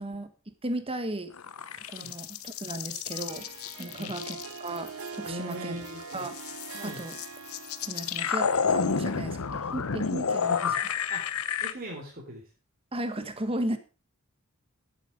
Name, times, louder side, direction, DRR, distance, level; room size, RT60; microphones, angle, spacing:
voice 1, 0.0-1.3 1.9-3.5 3.8-5.8 6.1-6.4 6.8-7.1 7.8-10.5 12.9-13.8, right 1 dB, 25° right, 10 dB, 1.4 m, -35 dB
sound 1, 1.3-5.5 5.9-11.7, left 6 dB, 90° left, 0.8 m, -30 dB
Harp, 3.1-8.9, right 5 dB, 80° right, 0.7 m, -43 dB
voice 2, 3.8-4.1 5.2-6.3 6.7-7.0 10.4-11.2 11.6-12.5, equal, 45° right, -2 dB, 3.3 m, -40 dB
10.5 x 9.4 x 5.2 m, 0.34 s
head